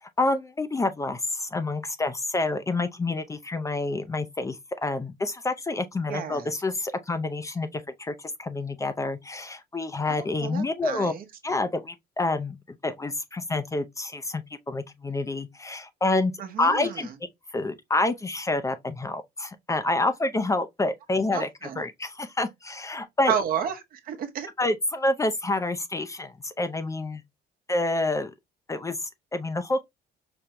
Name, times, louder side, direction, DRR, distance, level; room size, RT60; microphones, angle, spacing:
voice 1, 0.0-11.1 11.4-12.6 12.8-16.3 16.6-17.1 17.5-21.5 21.8-23.3 24.6-27.2 27.7-28.3 28.7-29.8, left 2 dB, 20° left, 0.5 m, -28 dB
voice 2, 6.1-6.5 10.1-11.3 16.4-17.1 21.3-21.8 23.3-24.5, right 8 dB, 55° right, 0.9 m, -31 dB
5.1 x 2.2 x 2.9 m
cardioid pair, 110°, 17 cm